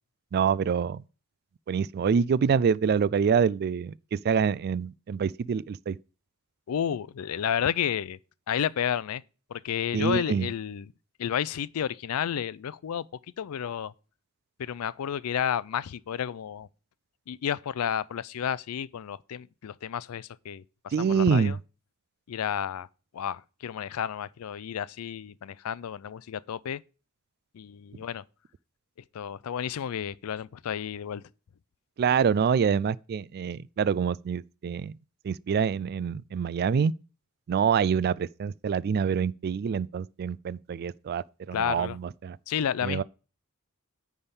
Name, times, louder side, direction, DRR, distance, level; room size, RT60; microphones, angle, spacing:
voice 1, 0.3-1.0 1.7-6.0 9.9-10.5 20.9-21.6 32.0-34.9 35.2-36.9 37.5-42.4 42.8-43.0, right 6 dB, 45° right, 0.3 m, -26 dB
voice 2, 6.7-8.2 8.5-9.2 9.5-10.9 11.2-13.1 13.4-13.9 14.6-16.7 17.3-21.6 22.3-22.9 23.1-26.8 27.5-28.2 29.1-31.2 41.5-42.0 42.5-43.0, left 8 dB, 80° left, 0.4 m, -31 dB
9.7 x 3.6 x 7.1 m
head